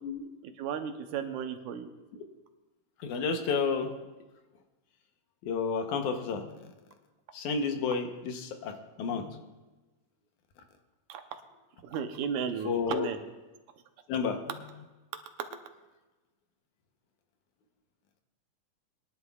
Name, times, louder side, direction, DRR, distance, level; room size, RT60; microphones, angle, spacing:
voice 1, 0.6-1.9 11.1-11.2 11.8-13.2 15.4-15.5, right 7 dB, 80° right, 7 dB, 2.2 m, -34 dB
voice 2, 3.0-3.9 5.4-6.6 7.3-9.4 12.6-13.1 14.1-14.4, left 5 dB, 80° left, 5 dB, 2.4 m, -31 dB
21.0 x 11.0 x 2.4 m, 1.2 s
omnidirectional pair, 3.5 m